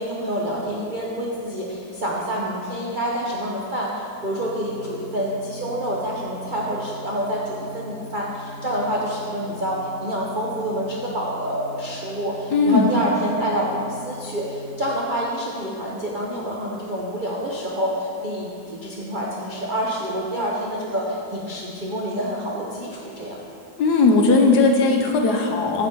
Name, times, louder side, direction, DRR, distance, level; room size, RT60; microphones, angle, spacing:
voice 1, 0.0-23.4, equal, 80° right, -4 dB, 0.4 m, -27 dB
sound 1, 4.2-14.8, left 1 dB, 20° right, 1.9 m, -41 dB
voice 2, 12.5-13.0 23.8-25.9, left 3 dB, 65° left, 2 dB, 1.1 m, -18 dB
8.0 x 7.1 x 4.4 m, 2.5 s
omnidirectional pair, 2.2 m